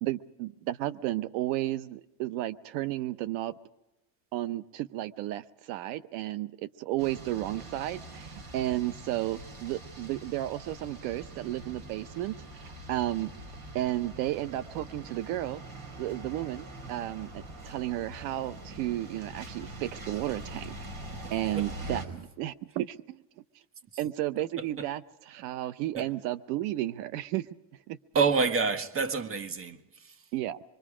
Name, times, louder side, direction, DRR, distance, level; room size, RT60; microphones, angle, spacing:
voice 1, 0.0-3.5 4.3-13.3 13.7-15.6 16.0-20.7 21.3-23.2 24.0-25.0 25.3-27.5 27.9-28.0 30.3-30.6, right 15 dB, 80° right, 0.8 m, -33 dB
sound 1, 7.0-22.1, right 2 dB, 50° right, 4.9 m, -44 dB
voice 2, 21.2-22.0 23.9-24.0 24.6-24.9 25.9-26.1 28.1-30.3, right 5 dB, 30° right, 1.5 m, -29 dB
26.0 x 23.0 x 5.0 m
cardioid pair, 125°, 46 cm